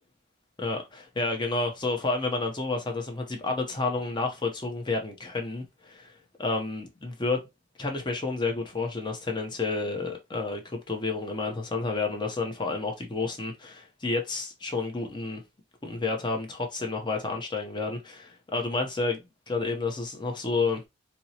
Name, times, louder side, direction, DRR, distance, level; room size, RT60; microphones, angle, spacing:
voice 1, 0.6-7.5 7.8-15.4 15.8-20.8, left 3 dB, 20° left, 0.7 m, -30 dB
4.3 x 2.0 x 2.8 m
head